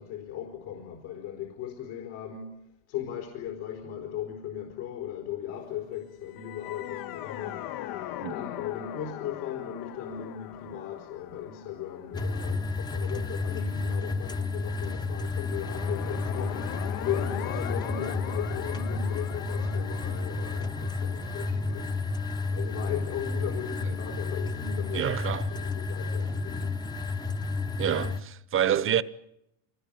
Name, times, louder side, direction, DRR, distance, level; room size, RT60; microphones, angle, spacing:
voice 1, 0.0-2.6 2.9-7.7 8.2-16.7 17.0-22.0 22.5-26.8, left 10 dB, 70° left, 4.2 m, -37 dB
sound 1, 6.2-13.5 15.4-23.2, left 13 dB, 55° left, 0.9 m, -41 dB
sound 2, 12.1-28.2, left 3 dB, 10° left, 0.8 m, -31 dB
voice 2, 24.9-25.6 27.8-29.0, right 9 dB, 30° right, 0.9 m, -27 dB
24.5 x 19.0 x 8.9 m
supercardioid pair, 120°, 41 cm